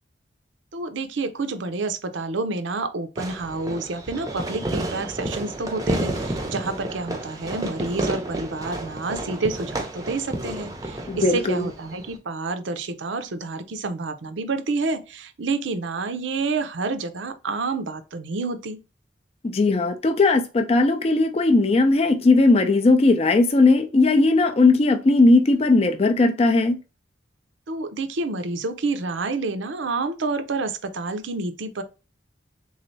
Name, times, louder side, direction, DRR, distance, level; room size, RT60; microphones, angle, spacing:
voice 1, 0.7-18.8 27.7-31.8, right 3 dB, 75° right, 0.6 m, -29 dB
Fireworks, 3.2-12.2, right 1 dB, 20° right, 0.6 m, -31 dB
voice 2, 11.1-11.7 19.4-26.8, left 3 dB, 30° left, 0.4 m, -18 dB
3.7 x 3.2 x 2.6 m
head